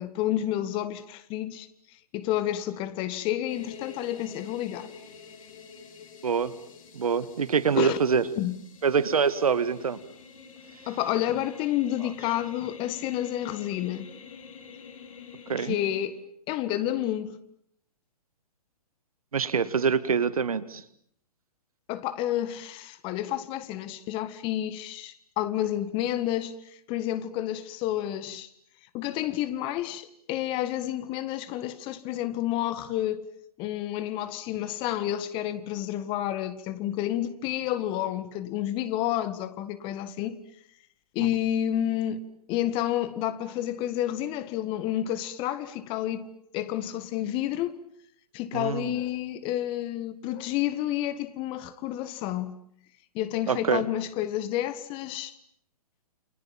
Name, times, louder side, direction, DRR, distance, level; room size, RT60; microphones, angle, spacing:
voice 1, 0.0-1.7 2.1-4.9 7.8-8.0 8.4-8.6 10.9-14.1 15.6-16.2 16.5-17.4 21.9-26.5 26.9-28.5 28.9-33.2 33.6-40.4 41.2-46.3 46.5-47.7 48.3-52.6 53.2-55.3, left 12 dB, 25° left, 1.7 m, -30 dB
sound 1, 3.5-16.1, left 6 dB, 55° left, 5.7 m, -48 dB
voice 2, 6.9-8.3 8.8-10.0 15.5-15.8 19.3-20.8 48.5-49.0 53.5-53.8, right 6 dB, 65° right, 2.0 m, -25 dB
29.5 x 26.0 x 7.4 m
figure-of-eight pair, 120°, 20 cm